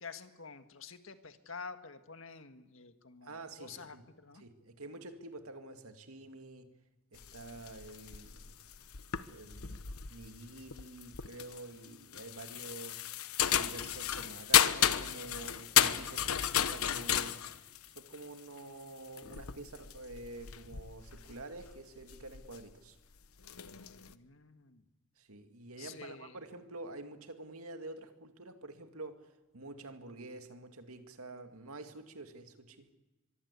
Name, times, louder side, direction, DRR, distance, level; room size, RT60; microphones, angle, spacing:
voice 1, 0.0-4.4 24.1-24.8 25.8-26.4, left 5 dB, 65° left, 9 dB, 1.7 m, -49 dB
voice 2, 3.2-4.0 4.3-6.7 7.1-8.6 9.3-13.0 13.5-17.4 18.0-23.0 25.2-32.9, right 2 dB, 85° right, 7 dB, 2.3 m, -48 dB
sound 1, 7.2-22.7 23.2-24.1, left 10 dB, 90° left, 1.1 m, -33 dB
24.0 x 23.0 x 8.3 m, 1.1 s
head